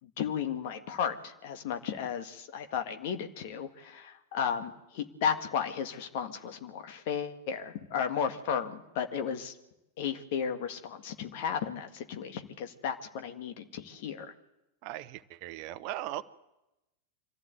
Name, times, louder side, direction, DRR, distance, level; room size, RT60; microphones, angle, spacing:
voice 1, 0.0-9.5 10.0-14.3, left 7 dB, 50° left, 7 dB, 1.8 m, -34 dB
voice 2, 14.8-16.2, right 14 dB, 45° right, 14 dB, 0.9 m, -38 dB
25.0 x 15.0 x 8.0 m, 0.95 s
figure-of-eight pair, 90°, 0 cm